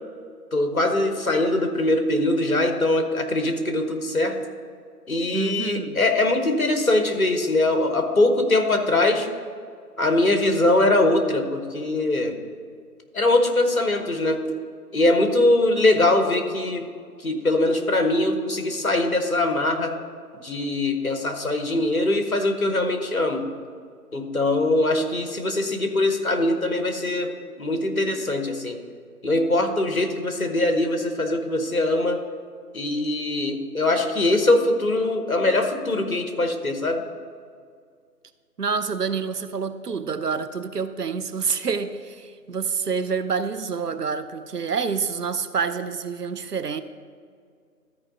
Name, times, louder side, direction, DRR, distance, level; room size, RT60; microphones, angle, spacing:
voice 1, 0.5-4.4 5.1-9.3 10.0-12.4 13.1-14.4 14.9-16.9 17.2-19.9 20.4-23.4 24.1-27.3 27.6-28.8 29.2-32.2 32.7-37.0, left 2 dB, 60° left, 5 dB, 1.2 m, -22 dB
voice 2, 5.3-6.0 38.6-46.8, right 5 dB, 70° right, 11 dB, 0.7 m, -27 dB
13.5 x 4.8 x 3.9 m, 2.1 s
figure-of-eight pair, 165°, 49 cm